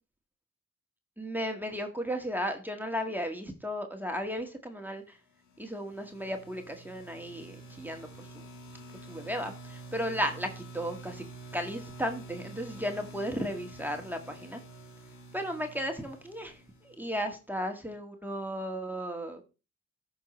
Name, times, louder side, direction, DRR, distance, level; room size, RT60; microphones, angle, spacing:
voice 1, 1.2-5.2 5.6-8.4 9.1-11.2 11.5-14.6 15.3-19.4, equal, 5° right, 4 dB, 1.7 m, -35 dB
sound 1, 5.5-17.2, right 2 dB, 90° left, 2.0 m, -48 dB
13.5 x 5.6 x 3.2 m, 0.31 s
cardioid pair, 50°, 31 cm